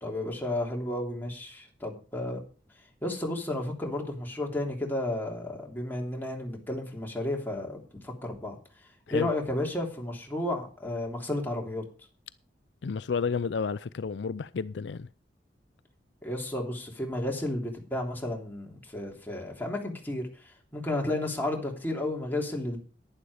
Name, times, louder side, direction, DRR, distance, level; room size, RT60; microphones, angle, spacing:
voice 1, 0.0-2.4 3.0-8.5 9.1-11.8 16.2-22.8, left 1 dB, 10° left, 3.1 m, -32 dB
voice 2, 12.8-15.1, left 5 dB, 75° left, 0.4 m, -31 dB
11.0 x 10.0 x 4.9 m
head